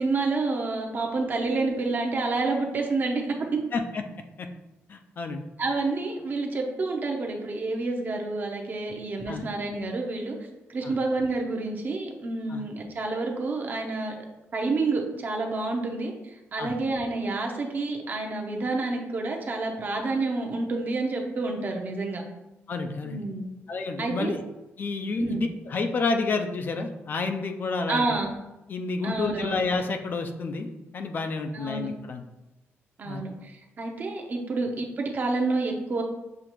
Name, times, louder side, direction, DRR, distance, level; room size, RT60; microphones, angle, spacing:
voice 1, 0.0-3.6 5.6-10.4 10.7-14.1 14.5-22.2 23.0-23.5 24.0-24.3 25.2-25.4 27.9-28.3 29.0-29.6 31.5-31.9 33.0-36.0, right 3 dB, 40° right, 1 dB, 0.7 m, -29 dB
voice 2, 3.7-4.0 4.4-4.5 4.9-5.4 9.3-9.4 10.8-10.9 12.5-12.6 16.6-16.7 22.7-23.2 23.7-24.4 24.8-28.1 28.7-30.7 30.9-32.2 33.1-33.2, left 3 dB, 45° left, 6 dB, 0.4 m, -29 dB
6.9 x 2.4 x 3.0 m, 1.0 s
cardioid pair, 135°, 5 cm